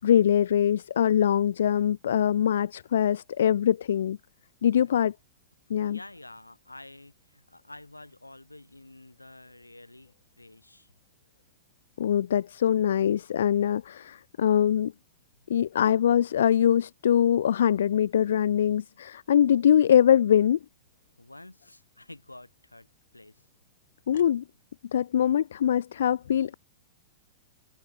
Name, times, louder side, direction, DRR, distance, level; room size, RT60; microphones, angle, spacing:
voice 1, 0.0-4.2 4.6-5.1 5.7-6.0 12.0-14.9 15.5-20.6 24.1-24.4 24.9-26.5, left 9 dB, 65° left, 0.3 m, -23 dB
voice 2, 5.8-10.9 21.2-23.4, left 2 dB, 90° left, 3.4 m, -49 dB
figure-of-eight pair, 100°, 0 cm